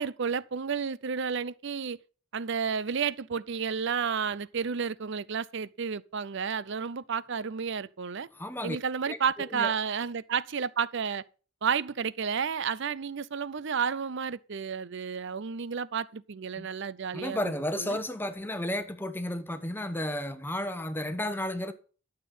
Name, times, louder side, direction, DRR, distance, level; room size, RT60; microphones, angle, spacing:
voice 1, 0.0-2.0 2.3-8.3 8.6-11.2 11.6-17.5 17.8-18.0, right 6 dB, 60° right, 0.6 m, -31 dB
voice 2, 8.3-8.8 9.1-9.2 9.5-9.7 16.5-16.7 17.1-21.7, left 1 dB, 10° left, 1.0 m, -33 dB
12.0 x 7.3 x 5.5 m
head